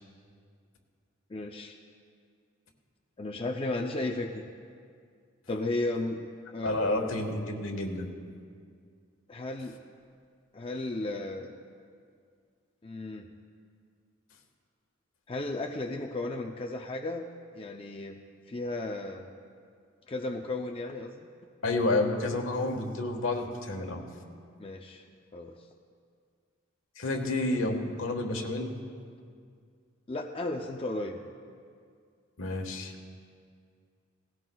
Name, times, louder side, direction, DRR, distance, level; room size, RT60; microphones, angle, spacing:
voice 1, 1.3-1.8 3.2-4.4 5.5-7.1 9.3-9.8 10.5-11.5 12.8-13.3 15.3-17.3 17.5-18.2 18.5-19.3 20.1-21.3 24.6-25.0 25.3-25.6 30.1-31.2, left 2 dB, 25° left, 2 dB, 0.5 m, -34 dB
voice 2, 6.6-8.1 21.6-24.0 27.0-28.7 32.4-32.9, left 2 dB, 75° left, 3 dB, 1.4 m, -30 dB
18.0 x 16.5 x 2.3 m, 2.2 s
head